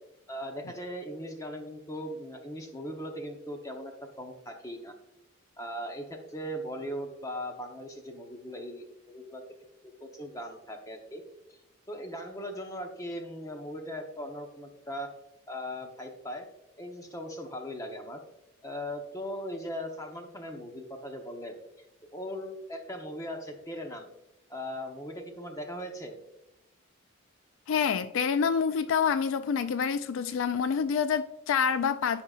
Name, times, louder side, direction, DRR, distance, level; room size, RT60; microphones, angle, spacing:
voice 1, 0.3-4.9 5.6-9.4 10.0-11.2 11.9-15.1 15.5-16.5 16.8-18.2 18.6-21.5 22.1-24.1 24.5-26.2, equal, 15° left, 0.9 m, -39 dB
voice 2, 27.7-32.2, left 6 dB, 65° left, 0.3 m, -27 dB
15.0 x 5.2 x 2.4 m
head